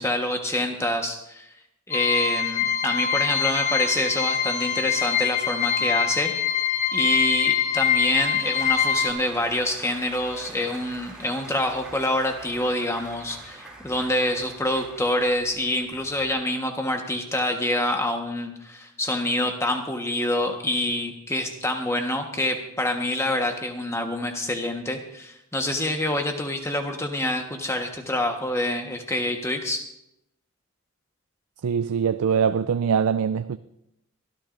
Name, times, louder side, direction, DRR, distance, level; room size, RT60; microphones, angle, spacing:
voice 1, 0.0-1.5 1.9-6.3 6.9-29.8, left 1 dB, 15° left, 1.3 m, -26 dB
sound 1, 1.9-9.1, left 8 dB, 35° left, 1.2 m, -24 dB
Applause / Crowd, 6.7-16.3, right 2 dB, 5° right, 2.8 m, -45 dB
voice 2, 31.6-33.6, right 7 dB, 90° right, 0.4 m, -23 dB
24.0 x 13.5 x 2.6 m
head